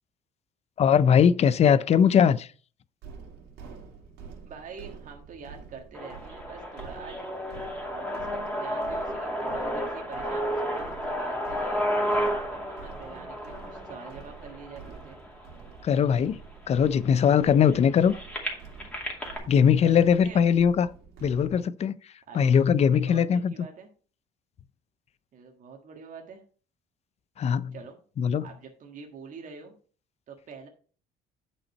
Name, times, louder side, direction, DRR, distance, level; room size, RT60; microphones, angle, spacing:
voice 1, 0.8-2.5 15.8-16.4 16.7-18.1 19.5-20.9 21.2-22.0 22.3-23.5 27.4-27.7 28.2-28.4, left 7 dB, 40° left, 0.5 m, -20 dB
sound 1, 3.0-21.6, right 5 dB, 75° right, 2.6 m, -48 dB
voice 2, 4.5-7.2 7.9-15.2 19.8-19.9 20.2-20.4 22.3-22.6 22.9-23.9 25.3-26.4 27.7-28.0 28.4-29.7 30.3-30.7, right 5 dB, 50° right, 1.6 m, -45 dB
sound 2, 5.9-15.9 16.6-16.7 16.9-19.4, equal, 5° left, 2.4 m, -32 dB
8.7 x 5.5 x 4.3 m
cardioid pair, 110°, 17 cm